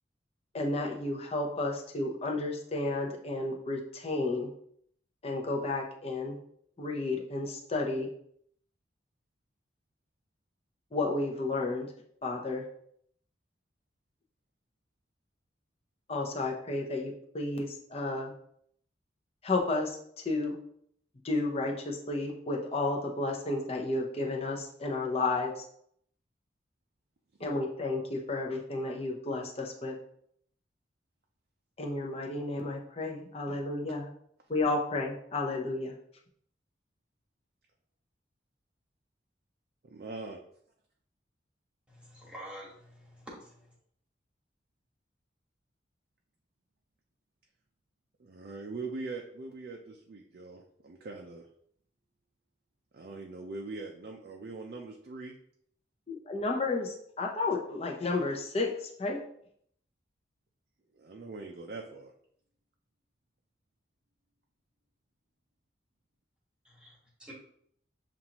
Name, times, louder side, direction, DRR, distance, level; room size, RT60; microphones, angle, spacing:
voice 1, 0.5-4.5 5.2-6.4 6.8-8.1 10.9-11.9 12.2-12.6 16.1-18.3 19.4-20.0 20.2-20.6 21.2-25.7 27.4-30.0 31.8-34.1 34.5-35.9 56.1-59.2, left 2 dB, 35° left, 1 dB, 0.7 m, -32 dB
voice 2, 39.9-40.4 48.2-51.5 52.9-55.3 60.9-62.1, right 3 dB, 55° right, 1 dB, 0.4 m, -42 dB
voice 3, 41.9-43.7 66.6-67.3, equal, 5° right, -5 dB, 1.3 m, -48 dB
7.1 x 2.5 x 2.9 m, 0.67 s
head